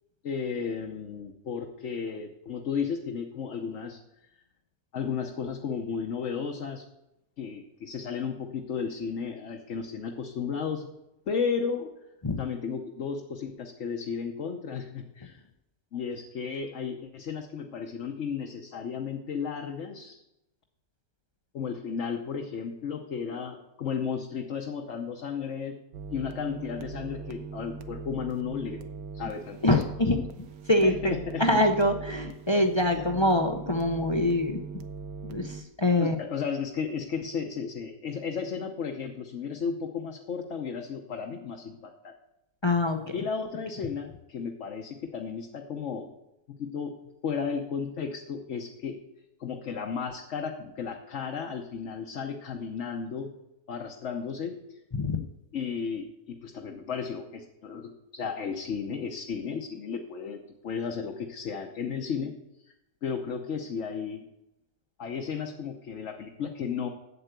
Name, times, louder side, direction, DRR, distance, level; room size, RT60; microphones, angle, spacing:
voice 1, 0.2-4.0 4.9-6.8 7.4-10.9 11.3-11.9 12.4-15.4 15.9-20.2 21.5-25.8 26.1-28.8 29.1-29.6 30.8-31.4 32.9-33.1 36.0-42.1 43.1-46.1 46.6-46.9 47.2-49.0 49.4-53.3 53.7-54.8 55.5-62.3 63.0-64.2 65.0-66.9, left 6 dB, 55° left, 3 dB, 1.2 m, -34 dB
sound 1, 25.9-35.6, right 5 dB, 85° right, 1.3 m, -41 dB
voice 2, 29.6-30.2 30.7-31.1 31.4-34.6 35.2-36.2 42.6-43.1 54.9-55.2, left 1 dB, 35° left, 4 dB, 0.4 m, -24 dB
8.2 x 7.9 x 7.9 m, 0.89 s
omnidirectional pair, 1.5 m